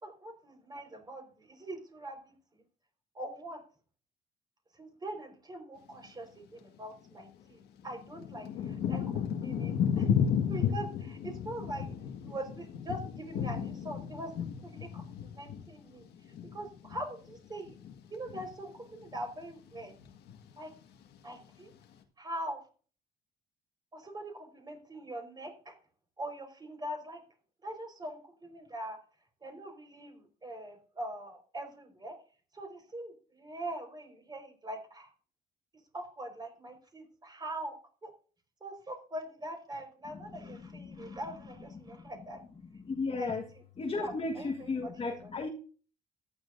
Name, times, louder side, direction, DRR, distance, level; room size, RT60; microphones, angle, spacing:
voice 1, 0.0-2.6 3.1-3.6 4.8-9.0 9.3-10.1 10.5-11.9 12.2-16.1 16.5-17.7 18.1-19.9 20.6-20.7 21.2-21.7 22.2-22.6 23.9-25.7 26.2-27.2 27.6-29.0 29.4-32.1 32.5-35.1 35.9-37.8 38.0-38.1 38.6-42.4 43.1-43.6 43.9-45.3, right 1 dB, 25° right, 4 dB, 4.8 m, -42 dB
Thunder / Rain, 7.1-7.2 7.8-17.4 17.7-18.5 19.1-19.4 19.7-20.5 21.1-21.2, left 8 dB, 75° left, 1.7 m, -33 dB
voice 2, 40.5-41.2 42.0-42.1 42.8-43.4 43.8-45.5, left 3 dB, 35° left, 3 dB, 1.5 m, -35 dB
14.5 x 11.0 x 2.7 m, 0.39 s
cardioid pair, 110°, 17 cm